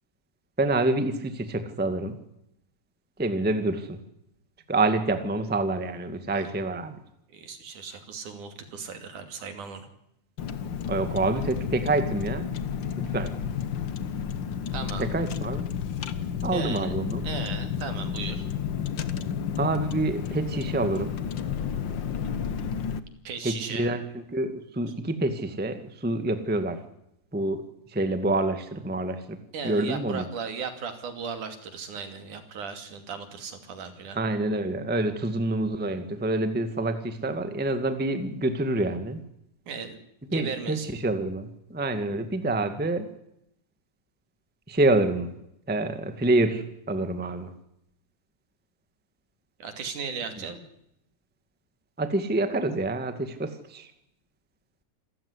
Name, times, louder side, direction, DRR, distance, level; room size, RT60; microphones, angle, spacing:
voice 1, 0.6-2.2 3.2-4.0 4.7-7.0 10.9-12.5 13.0-13.3 15.0-15.7 16.4-17.3 19.6-21.1 23.4-24.0 24.3-26.8 27.3-27.6 27.9-29.4 29.6-30.2 34.1-39.2 40.3-43.1 44.7-45.3 45.7-47.5 50.2-50.3 52.0-53.9, right 2 dB, 5° right, 9 dB, 1.3 m, -27 dB
voice 2, 7.3-9.9 14.7-15.1 16.5-17.0 17.2-18.4 23.2-23.9 29.5-34.2 39.7-40.0 40.3-41.0 49.6-50.7, right 5 dB, 70° right, 8 dB, 4.1 m, -36 dB
Car, 10.4-23.0, left 7 dB, 60° left, 1.3 m, -31 dB
28.0 x 15.5 x 9.8 m, 0.81 s
omnidirectional pair, 3.7 m